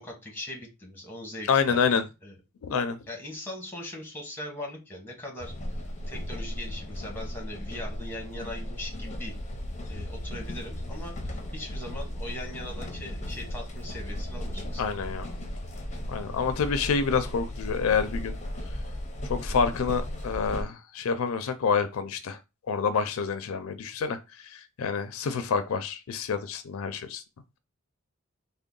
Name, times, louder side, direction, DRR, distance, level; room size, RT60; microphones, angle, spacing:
voice 1, 0.0-2.4 3.1-9.3 9.9-14.9, left 1 dB, 10° left, 1.1 m, -40 dB
voice 2, 1.5-2.0 2.6-3.0 14.8-15.3 16.1-18.4 19.2-22.4 22.7-24.2 24.4-27.2, left 5 dB, 80° left, 0.4 m, -27 dB
sound 1, 5.4-20.6, left 1 dB, 35° left, 0.6 m, -36 dB
3.6 x 2.1 x 3.7 m
head